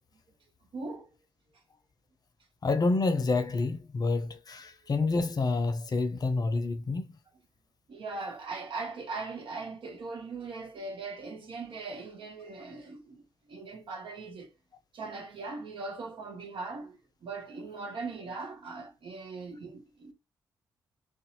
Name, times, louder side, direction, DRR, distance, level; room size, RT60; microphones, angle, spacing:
voice 1, 0.7-1.2 7.9-14.5 14.9-20.1, right 3 dB, 65° right, 0.8 m, -40 dB
voice 2, 2.6-7.1, left 3 dB, 45° left, 0.6 m, -28 dB
2.5 x 2.2 x 2.8 m
supercardioid pair, 50°, 9 cm